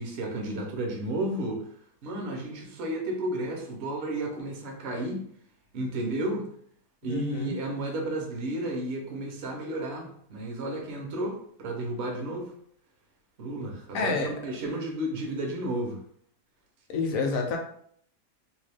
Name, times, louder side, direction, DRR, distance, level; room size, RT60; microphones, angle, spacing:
voice 1, 0.0-1.7 2.0-5.2 5.7-6.5 7.0-12.5 13.4-16.0, right 1 dB, 55° right, 1 dB, 0.8 m, -32 dB
voice 2, 7.0-7.5 13.9-14.3 16.9-17.6, left 4 dB, 70° left, 2 dB, 0.9 m, -28 dB
2.7 x 2.3 x 3.3 m, 0.63 s
omnidirectional pair, 1.7 m